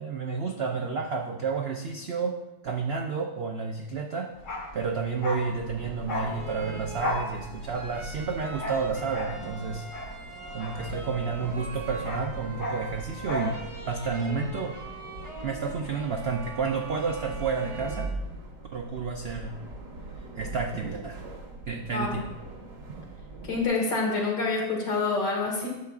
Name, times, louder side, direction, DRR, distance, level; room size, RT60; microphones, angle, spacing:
voice 1, 0.0-2.4 2.6-4.3 4.7-9.9 10.5-14.8 15.4-18.1 18.7-19.6 20.4-21.2 21.7-22.2, right 5 dB, 85° right, 3 dB, 0.5 m, -30 dB
Bark, 4.4-11.4 11.7-13.6 13.8-14.0, left 1 dB, 65° left, 1.9 m, -35 dB
sound 1, 5.6-23.7, right 2 dB, 70° right, 1.7 m, -41 dB
sound 2, 6.3-18.1, right 1 dB, 30° right, 0.5 m, -43 dB
voice 2, 21.9-22.2 23.4-25.7, left 3 dB, 85° left, -2 dB, 2.4 m, -27 dB
11.0 x 7.0 x 2.4 m, 0.99 s
omnidirectional pair, 1.8 m